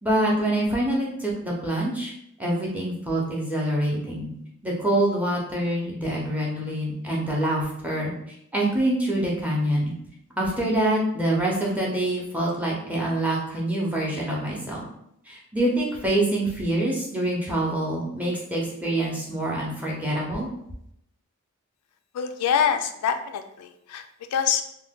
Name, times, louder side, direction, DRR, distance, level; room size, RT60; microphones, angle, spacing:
voice 1, 0.0-2.1 2.4-4.3 4.6-8.1 8.5-9.9 10.4-14.8 15.3-20.5, right 1 dB, 5° right, -4 dB, 0.6 m, -25 dB
voice 2, 22.1-24.0 24.3-24.6, left 7 dB, 90° left, 8 dB, 0.3 m, -25 dB
2.7 x 2.1 x 3.5 m, 0.75 s
head